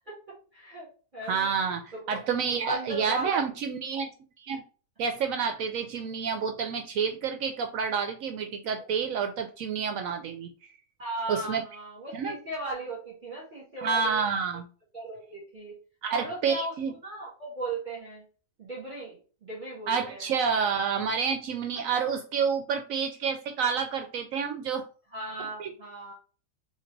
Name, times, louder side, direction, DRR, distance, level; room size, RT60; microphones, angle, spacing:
voice 1, 0.5-0.9 1.1-1.5 1.9-3.4 11.0-14.2 14.9-15.7 16.1-16.7 17.0-18.2 18.6-20.3 22.0-22.2 25.1-26.1, right 2 dB, 35° right, 1.6 m, -37 dB
voice 2, 1.3-4.1 4.4-4.6 5.0-10.5 11.3-11.6 12.1-12.4 13.8-14.7 16.0-16.9 19.9-24.8 25.6-25.7, right 6 dB, 70° right, 0.9 m, -29 dB
3.8 x 2.9 x 4.5 m
omnidirectional pair, 1.6 m